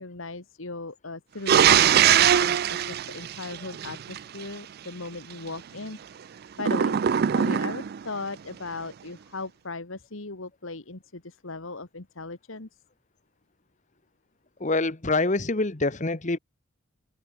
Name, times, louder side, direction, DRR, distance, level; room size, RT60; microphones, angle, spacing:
voice 1, 0.0-6.0 6.6-12.7, left 3 dB, 70° left, 1.8 m, -38 dB
sound 1, 1.5-4.2 6.6-8.0, right 9 dB, 45° right, 0.3 m, -21 dB
voice 2, 14.6-16.4, left 2 dB, 35° left, 1.2 m, -25 dB
head